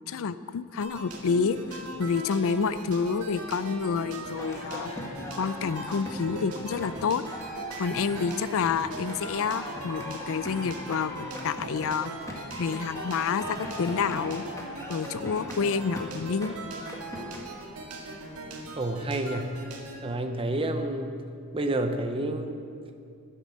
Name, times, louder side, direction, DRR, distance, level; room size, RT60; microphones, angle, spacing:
voice 1, 0.1-4.9 5.4-7.2 7.8-12.1 12.6-14.4 14.9-16.5, left 5 dB, 65° left, 14 dB, 0.5 m, -28 dB
sound 1, 0.8-20.0, right 2 dB, 70° right, 1.8 m, -40 dB
sound 2, 4.3-17.4, left 1 dB, 15° left, 1.7 m, -40 dB
voice 2, 18.8-19.5 20.0-21.1 21.5-22.6, right 1 dB, 25° right, 6 dB, 0.7 m, -29 dB
12.5 x 10.0 x 6.3 m, 2.4 s
head